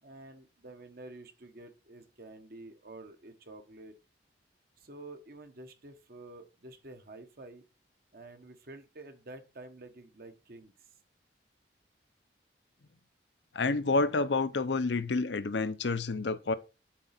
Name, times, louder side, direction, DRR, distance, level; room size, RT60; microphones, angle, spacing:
voice 1, 0.0-3.9 4.8-7.6 8.1-10.9, right 2 dB, 55° right, 1.2 m, -49 dB
voice 2, 13.5-16.5, left 3 dB, 80° left, 0.7 m, -29 dB
7.5 x 3.8 x 5.9 m
head